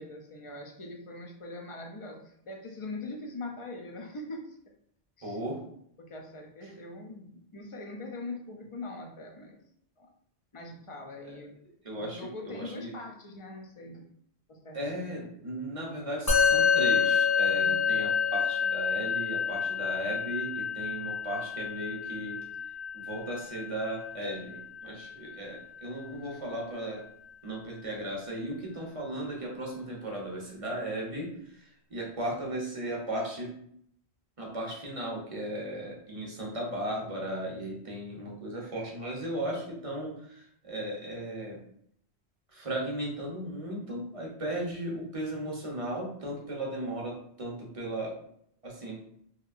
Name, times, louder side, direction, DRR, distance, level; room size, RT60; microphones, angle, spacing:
voice 1, 0.0-4.6 5.2-5.4 6.0-9.6 10.0-10.1 10.5-11.5 11.9-14.0 14.5-14.9 17.5-17.9, left 2 dB, 50° left, 1 dB, 0.4 m, -42 dB
voice 2, 5.2-5.6 11.8-12.9 14.7-22.4 22.9-27.0 27.4-33.5 34.4-41.6 42.5-48.1 48.6-49.0, right 1 dB, 35° right, -2 dB, 0.7 m, -36 dB
Musical instrument, 16.3-25.8, left 6 dB, 25° left, 0.7 m, -28 dB
2.8 x 2.7 x 2.4 m, 0.68 s
omnidirectional pair, 1.1 m